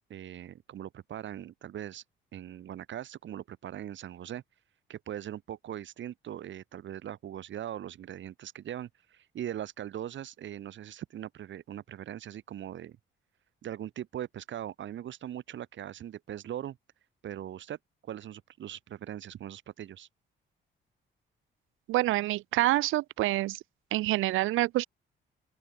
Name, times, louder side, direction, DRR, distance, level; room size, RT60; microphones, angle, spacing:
voice 1, 0.0-2.0 2.3-4.4 4.9-13.0 13.6-16.8 17.2-17.8 18.0-20.1, right 11 dB, 70° right, 5.7 m, -40 dB
voice 2, 21.9-23.6 23.9-24.9, right 17 dB, 90° right, 0.8 m, -27 dB
open air
cardioid pair, 90°, 20 cm